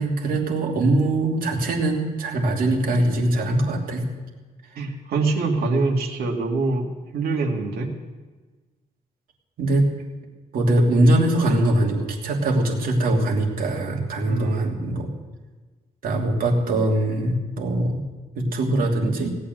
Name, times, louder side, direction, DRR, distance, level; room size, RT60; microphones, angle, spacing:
voice 1, 0.0-4.0 9.6-9.9 10.5-15.1 16.0-18.0 18.3-19.3, right 1 dB, 70° right, -1 dB, 2.9 m, -22 dB
voice 2, 4.8-7.9 14.3-14.7, right 3 dB, 90° right, 2 dB, 2.2 m, -24 dB
17.5 x 8.6 x 7.8 m, 1.3 s
cardioid pair, 155°, 15 cm